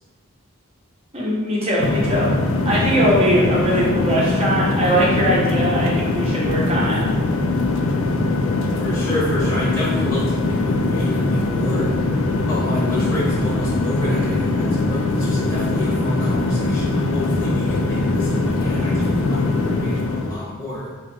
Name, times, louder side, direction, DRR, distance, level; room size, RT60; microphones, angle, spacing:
voice 1, 1.1-2.3 2.6-7.0, equal, 30° right, -5 dB, 1.0 m, -20 dB
sound 1, 1.8-20.4, left 2 dB, 75° left, 0.4 m, -21 dB
voice 2, 8.8-11.9 12.5-20.9, left 1 dB, 10° left, -9 dB, 1.1 m, -29 dB
4.1 x 2.4 x 4.4 m, 1.5 s
head